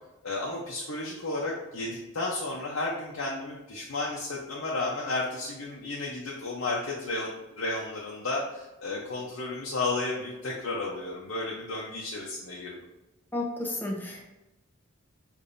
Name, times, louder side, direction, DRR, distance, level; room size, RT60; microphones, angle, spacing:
voice 1, 0.2-7.3 7.6-12.8, left 2 dB, 85° left, -4 dB, 0.7 m, -33 dB
voice 2, 13.3-14.3, left 1 dB, 10° left, -1 dB, 0.7 m, -32 dB
6.7 x 2.6 x 2.6 m, 0.99 s
head